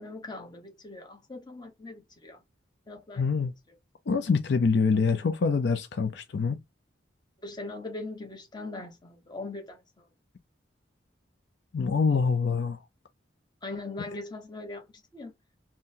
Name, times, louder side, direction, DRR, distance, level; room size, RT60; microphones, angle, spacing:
voice 1, 0.0-2.4 2.9-3.2 7.4-10.1 13.6-14.9 15.1-15.3, left 2 dB, 25° left, 0.9 m, -40 dB
voice 2, 3.2-3.5 4.1-6.6 11.7-12.8 14.0-14.1, left 5 dB, 60° left, 0.4 m, -25 dB
3.8 x 2.1 x 2.6 m
head